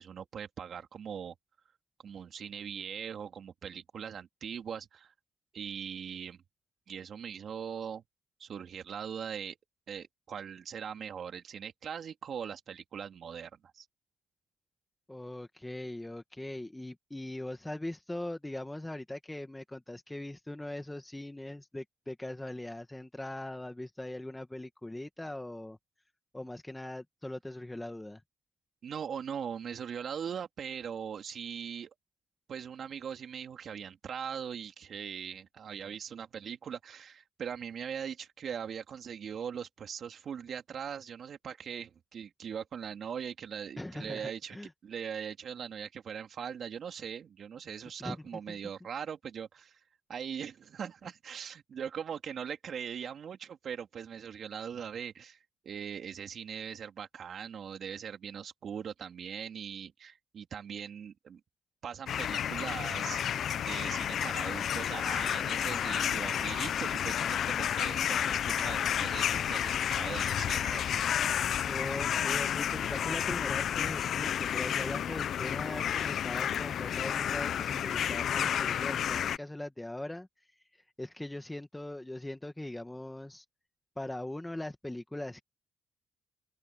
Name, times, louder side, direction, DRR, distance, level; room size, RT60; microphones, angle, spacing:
voice 1, 0.0-1.3 2.0-5.1 5.5-6.4 6.9-8.0 8.4-9.6 9.9-13.9 28.8-31.9 32.5-44.6 44.8-49.8 50.1-55.4 55.6-61.4 61.8-63.2 63.5-71.0, right 7 dB, 55° right, 3.1 m, -40 dB
voice 2, 15.1-25.8 26.3-28.2 43.8-44.7 48.0-48.2 48.5-48.6 71.6-80.5 80.7-83.4 84.0-85.4, left 1 dB, 10° left, 1.7 m, -40 dB
sound 1, 62.1-79.4, left 9 dB, 65° left, 0.6 m, -31 dB
cardioid pair, 90°, 0 cm